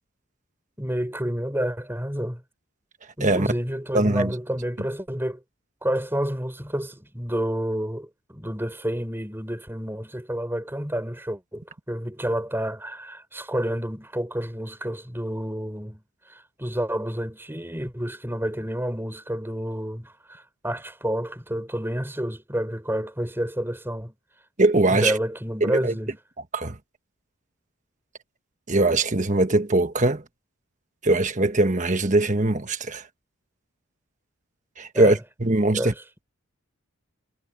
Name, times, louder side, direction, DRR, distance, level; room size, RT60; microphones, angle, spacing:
voice 1, 0.8-2.4 3.2-5.4 5.8-16.0 16.3-24.1 24.9-26.1 34.9-35.2 35.7-36.0, equal, 10° right, 4.4 m, -29 dB
voice 2, 3.9-4.3 24.6-25.2 25.6-25.9 26.5-26.8 28.7-30.2 31.0-33.0 34.8-35.9, right 2 dB, 35° right, 1.4 m, -21 dB
head